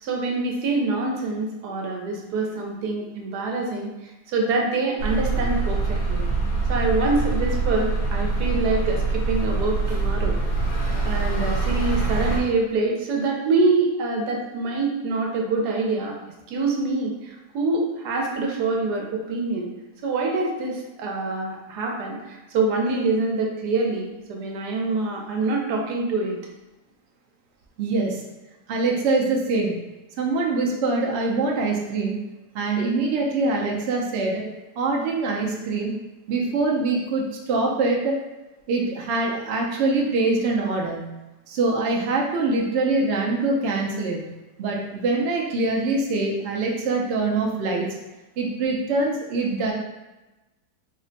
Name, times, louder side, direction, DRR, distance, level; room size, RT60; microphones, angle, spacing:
voice 1, 0.0-3.9 4.3-6.2 6.7-10.4 11.0-16.1 16.5-19.7 20.0-26.4, right 3 dB, 85° right, 0 dB, 1.2 m, -25 dB
sound 1, 5.0-12.4, right 3 dB, 85° left, 1.4 m, -24 dB
voice 2, 27.8-28.2 28.7-29.8 30.2-32.2 32.5-34.4 34.8-35.9 36.3-38.2 38.7-41.1 41.5-44.3 44.6-47.9 48.4-49.7, right 3 dB, 60° right, -1 dB, 0.7 m, -24 dB
3.4 x 2.1 x 3.8 m, 1.0 s
omnidirectional pair, 1.7 m